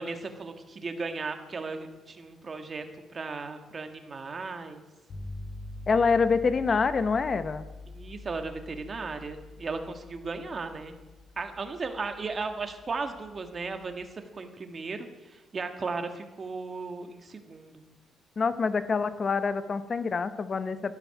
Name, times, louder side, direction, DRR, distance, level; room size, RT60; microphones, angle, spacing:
voice 1, 0.0-2.9 3.1-4.8 7.9-10.9 11.4-14.1 14.3-17.8, right 4 dB, 40° right, 6 dB, 1.7 m, -36 dB
sound 1, 5.1-14.1, left 2 dB, 60° left, 4.0 m, -45 dB
voice 2, 5.9-7.6 18.4-20.9, left 5 dB, 40° left, 13 dB, 0.9 m, -26 dB
13.0 x 11.5 x 5.9 m, 1.1 s
cardioid pair, 90°, 0 cm